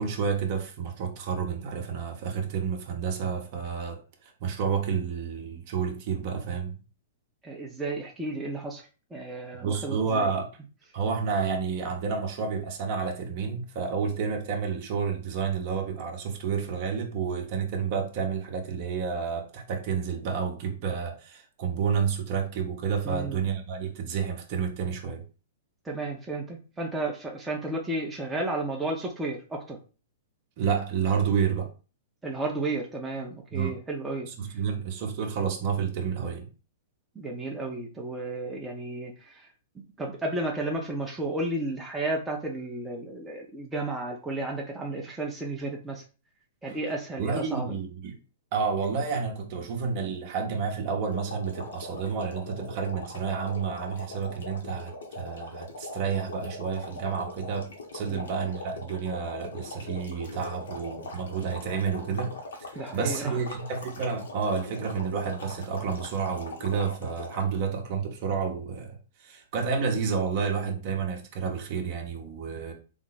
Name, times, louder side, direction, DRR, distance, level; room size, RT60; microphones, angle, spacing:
voice 1, 0.0-6.8 9.6-10.5 10.9-25.2 30.6-31.7 33.5-33.8 34.3-36.5 46.7-46.8 47.2-48.2 48.5-62.3 62.6-72.7, right 6 dB, 45° right, 1.0 m, -30 dB
voice 2, 7.4-8.8 9.1-10.3 23.0-23.4 25.8-29.8 32.2-34.3 37.2-39.3 40.0-46.0 46.6-47.7 58.1-58.3 62.8-63.4, right 2 dB, 10° right, 0.7 m, -33 dB
sound 1, 51.1-67.5, left 2 dB, 85° left, 1.1 m, -41 dB
3.5 x 2.1 x 4.0 m
hypercardioid pair, 130°, 0 cm